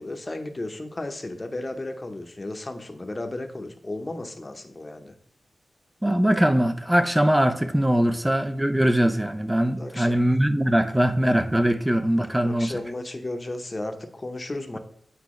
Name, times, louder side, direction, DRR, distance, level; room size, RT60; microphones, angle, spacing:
voice 1, 0.0-5.1 9.8-10.1 12.4-14.8, left 2 dB, 25° left, 0.8 m, -34 dB
voice 2, 6.0-12.8, right 1 dB, 10° right, 0.4 m, -21 dB
8.4 x 4.6 x 3.1 m
wide cardioid pair, 105°, 0 cm